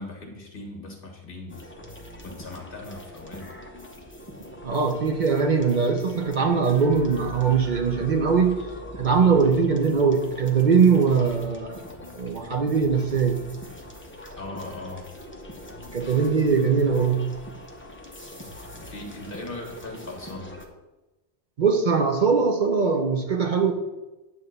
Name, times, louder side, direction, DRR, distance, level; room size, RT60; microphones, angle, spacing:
voice 1, 0.0-1.9 2.2-3.5 14.4-15.1 18.8-20.5, left 2 dB, 55° left, 1 dB, 1.8 m, -39 dB
sound 1, 1.5-20.7, equal, 10° left, 0.9 m, -42 dB
voice 2, 4.6-8.6 9.0-11.8 12.2-13.4 15.9-17.3 21.6-23.7, right 5 dB, 50° right, 4 dB, 0.8 m, -21 dB
9.5 x 3.6 x 6.6 m, 1.1 s
omnidirectional pair, 1.1 m